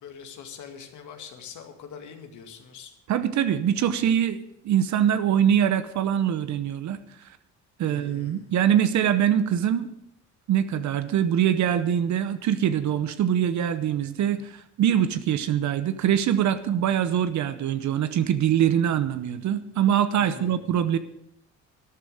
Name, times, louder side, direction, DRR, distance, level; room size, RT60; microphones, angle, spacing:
voice 1, 0.0-2.9 7.8-8.5 20.2-20.7, left 7 dB, 75° left, 4 dB, 2.1 m, -43 dB
voice 2, 3.1-4.4 4.6-7.0 7.8-9.9 10.5-21.0, right 9 dB, 70° right, 12 dB, 0.9 m, -23 dB
12.5 x 9.5 x 6.5 m, 0.76 s
cardioid pair, 90°, 30 cm